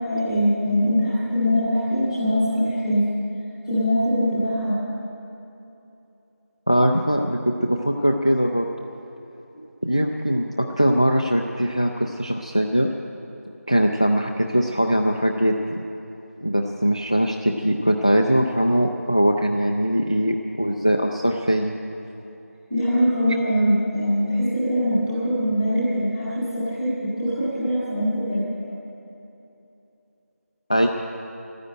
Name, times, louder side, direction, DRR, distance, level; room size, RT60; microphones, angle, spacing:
voice 1, 0.0-3.0 3.7-4.8 22.7-28.4, equal, ahead, -18 dB, 0.7 m, -22 dB
voice 2, 6.7-8.7 9.8-10.5 10.8-12.9 13.7-15.8 16.4-21.8 30.7-30.9, equal, 25° left, 3 dB, 0.3 m, -21 dB
13.0 x 9.9 x 8.8 m, 2.9 s
figure-of-eight pair, 175°, 8 cm